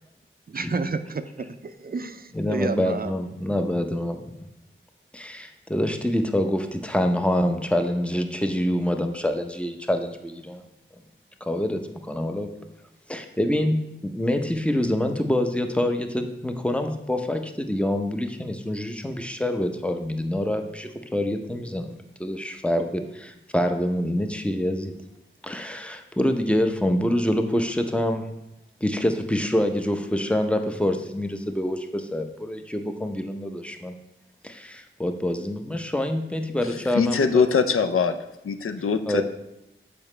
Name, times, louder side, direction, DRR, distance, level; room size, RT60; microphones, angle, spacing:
voice 1, 0.5-3.1, right 4 dB, 45° right, 10 dB, 0.4 m, -30 dB
voice 2, 2.3-4.3 5.1-10.6 11.5-11.8 12.1-12.5 13.1-24.9 25.4-28.3 28.8-33.9 34.4-37.5 39.1-39.2, left 1 dB, 5° left, 5 dB, 0.6 m, -26 dB
voice 3, 36.9-38.2 38.4-39.2, left 5 dB, 85° left, 9 dB, 0.4 m, -22 dB
7.0 x 4.9 x 3.2 m, 0.89 s
wide cardioid pair, 50°, 21 cm